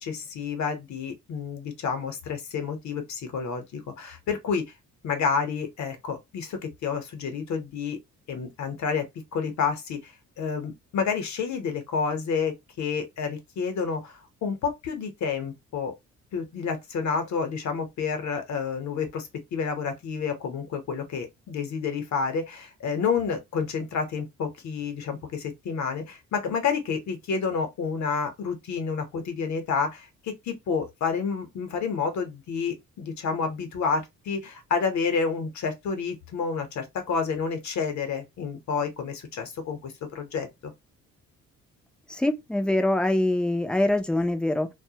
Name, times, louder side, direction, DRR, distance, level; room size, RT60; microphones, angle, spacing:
voice 1, 0.0-4.6 5.0-8.0 8.3-9.1 9.3-15.9 16.3-40.7, left 5 dB, 65° left, 0.8 m, -29 dB
voice 2, 42.1-44.7, left 1 dB, 5° left, 0.4 m, -24 dB
2.2 x 2.1 x 2.7 m
cardioid pair, 90°, 30 cm